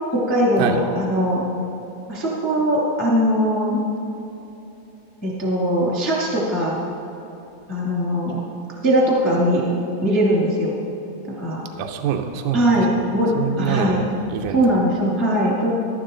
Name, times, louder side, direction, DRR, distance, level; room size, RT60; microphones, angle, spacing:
voice 1, 0.1-1.4 2.1-3.8 5.2-6.8 7.7-8.4 8.8-9.6 10.0-10.7 11.3-11.6 12.5-13.3 13.6-14.0 14.5-15.7, equal, 10° left, -5 dB, 1.0 m, -20 dB
voice 2, 11.8-12.7 13.3-14.7, right 8 dB, 80° right, 3 dB, 1.9 m, -25 dB
13.5 x 12.5 x 3.9 m, 3.0 s
omnidirectional pair, 4.9 m